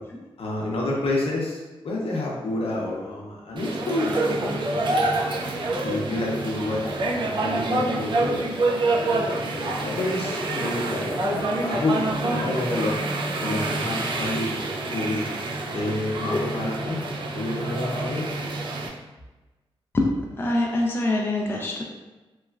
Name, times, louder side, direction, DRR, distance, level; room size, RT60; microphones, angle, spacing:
voice 1, 0.4-5.0 5.8-8.5 9.0-13.0 13.4-14.6 14.9-15.3 15.7-17.0 17.3-18.2, left 2 dB, 70° left, -3 dB, 0.6 m, -29 dB
sound 1, 3.6-18.9, right 2 dB, 55° right, 0.4 m, -27 dB
voice 2, 20.4-21.8, left 2 dB, 25° left, -1 dB, 0.4 m, -24 dB
3.0 x 2.3 x 2.3 m, 1.1 s
wide cardioid pair, 100°, 10 cm